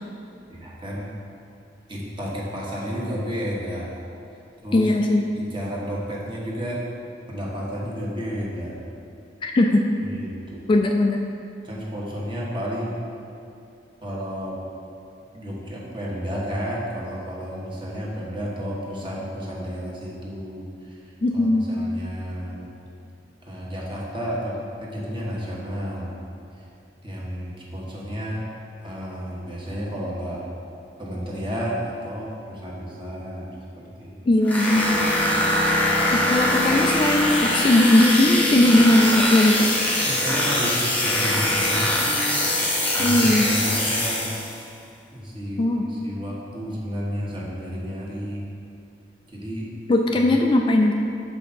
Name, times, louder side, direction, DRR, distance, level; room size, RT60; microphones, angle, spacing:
voice 1, 0.5-1.1 1.9-3.9 4.6-4.9 5.3-6.9 7.3-8.8 10.0-10.6 11.6-13.0 14.0-14.6 15.3-21.0 21.3-22.7 23.4-26.1 27.0-28.5 28.8-30.4 31.0-33.5 33.8-34.1 40.1-42.4 42.9-44.3 45.1-48.4 49.3-49.7, equal, 30° right, -5 dB, 1.2 m, -31 dB
voice 2, 4.7-5.2 9.4-9.8 10.7-11.2 21.2-21.7 34.3-35.0 36.1-39.7 43.0-43.5 45.6-45.8 49.9-50.9, left 1 dB, 30° left, 2 dB, 0.3 m, -19 dB
sound 1, 34.4-44.6, left 1 dB, 10° left, 0.9 m, -22 dB
6.7 x 5.0 x 4.1 m, 2.7 s
head